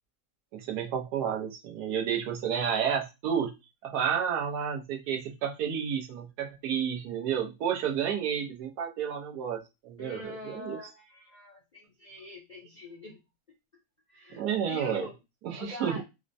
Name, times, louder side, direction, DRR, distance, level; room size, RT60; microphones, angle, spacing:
voice 1, 0.5-3.5 3.8-9.6 9.8-10.8 14.4-15.1 15.4-16.0, right 8 dB, 85° right, 3 dB, 1.3 m, -31 dB
voice 2, 10.0-13.2 14.1-15.2 15.6-16.0, left 3 dB, 55° left, -3 dB, 0.4 m, -44 dB
4.2 x 2.1 x 2.5 m, 0.25 s
omnidirectional pair, 1.7 m